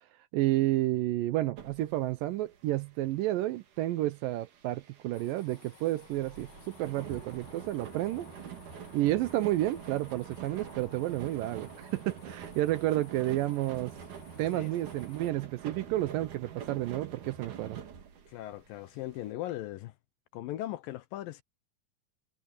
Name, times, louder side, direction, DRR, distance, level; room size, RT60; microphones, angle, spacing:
voice 1, 0.3-8.3 8.9-13.9 14.4-17.8, right 15 dB, 80° right, 2.1 m, -31 dB
sound 1, 1.6-19.2, right 8 dB, 55° right, 3.5 m, -46 dB
sound 2, 5.1-15.3, left 10 dB, 60° left, 2.3 m, -57 dB
voice 2, 18.3-19.9 20.3-21.4, left 14 dB, 80° left, 2.3 m, -38 dB
omnidirectional pair, 4.5 m